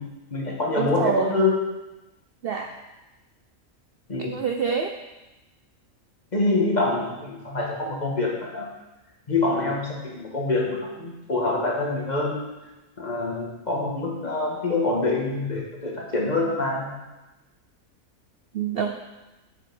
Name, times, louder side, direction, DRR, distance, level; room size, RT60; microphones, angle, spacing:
voice 1, 0.0-1.7 4.1-4.4 6.3-8.7 9.3-12.5 13.0-17.0, left 3 dB, 30° left, -2 dB, 1.8 m, -25 dB
voice 2, 0.8-1.4 2.4-2.7 4.2-4.9 18.5-18.9, right 6 dB, 60° right, 5 dB, 0.6 m, -26 dB
7.6 x 7.4 x 5.4 m, 1.0 s
omnidirectional pair, 1.4 m